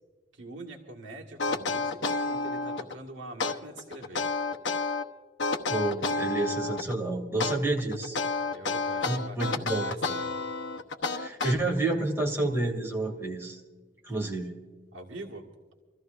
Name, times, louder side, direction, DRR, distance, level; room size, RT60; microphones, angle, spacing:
voice 1, 0.3-4.3 8.5-10.3 14.9-15.4, right 2 dB, 85° right, -1 dB, 2.0 m, -44 dB
sound 1, 1.4-2.9 3.4-5.0 5.4-6.9 7.4-11.9, left 3 dB, 80° left, 1.0 m, -30 dB
voice 2, 5.7-8.2 9.0-9.9 11.1-13.6 14.0-14.5, right 2 dB, 15° right, 0 dB, 2.6 m, -29 dB
27.5 x 14.5 x 2.6 m, 1.4 s
head